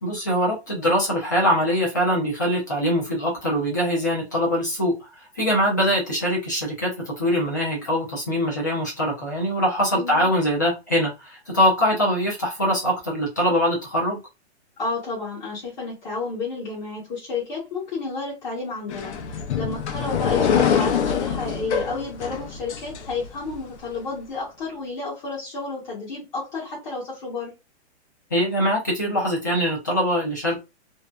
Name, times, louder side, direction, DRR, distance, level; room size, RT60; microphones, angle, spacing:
voice 1, 0.0-14.2 28.3-30.6, equal, 20° left, -4 dB, 0.4 m, -23 dB
voice 2, 9.9-10.3 14.8-19.1 19.5-27.5, left 3 dB, 40° left, -5 dB, 1.0 m, -31 dB
sound 1, 18.9-23.6, left 7 dB, 80° left, 0.7 m, -25 dB
2.6 x 2.1 x 2.2 m, 0.26 s
hypercardioid pair, 175°, 34 cm